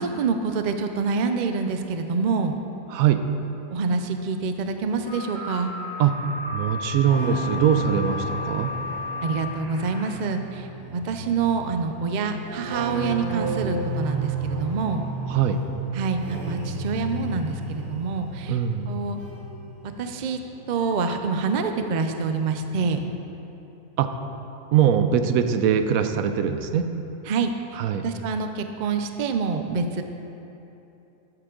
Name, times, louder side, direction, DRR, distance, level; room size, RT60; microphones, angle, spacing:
voice 1, 0.0-2.6 3.7-5.7 9.2-10.7 10.9-15.0 15.9-18.6 18.9-19.2 20.0-20.4 20.7-23.0 27.3-27.5 28.0-30.0, right 5 dB, 55° right, 7 dB, 0.5 m, -26 dB
voice 2, 2.9-3.2 6.0-6.2 6.5-8.7 15.3-15.6 18.5-19.0 24.0-24.1 24.7-26.9 27.7-28.0, right 8 dB, 80° right, 8 dB, 1.0 m, -22 dB
sound 1, 5.1-10.1, left 3 dB, 45° left, 2.0 m, -34 dB
sound 2, 6.1-21.9 22.2-23.0, right 2 dB, 40° right, 1.1 m, -34 dB
13.0 x 7.8 x 3.8 m, 3.0 s
omnidirectional pair, 1.5 m